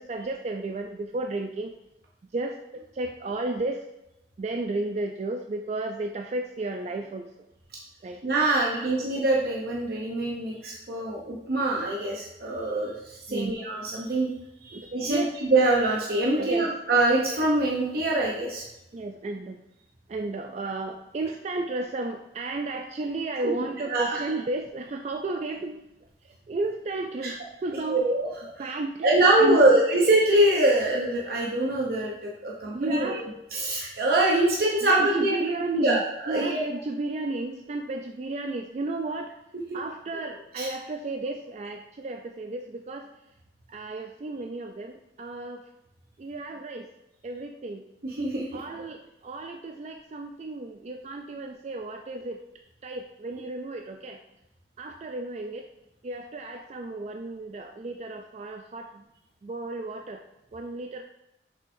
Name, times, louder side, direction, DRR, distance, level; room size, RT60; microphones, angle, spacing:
voice 1, 0.0-1.7 2.3-3.8 4.4-7.3 8.0-8.2 8.7-8.9 13.3-13.5 14.7-15.3 16.4-16.8 18.9-19.6 20.1-25.9 26.2-28.1 28.5-29.8 32.7-33.2 34.8-36.0 36.3-39.3 39.7-43.1 43.7-45.6 46.2-46.9 47.2-47.8 48.5-52.4 52.8-54.2 54.8-55.7 56.0-59.0 59.4-60.2 60.5-61.0, right 2 dB, 40° right, 4 dB, 0.3 m, -33 dB
voice 2, 8.2-14.3 14.6-18.6 23.4-23.5 23.9-24.2 27.2-27.3 27.7-28.3 29.0-33.2 33.5-35.4 35.7-36.7 40.6-40.7 48.0-48.6, right 2 dB, 60° right, -3 dB, 0.8 m, -24 dB
6.6 x 5.5 x 2.6 m, 0.88 s
head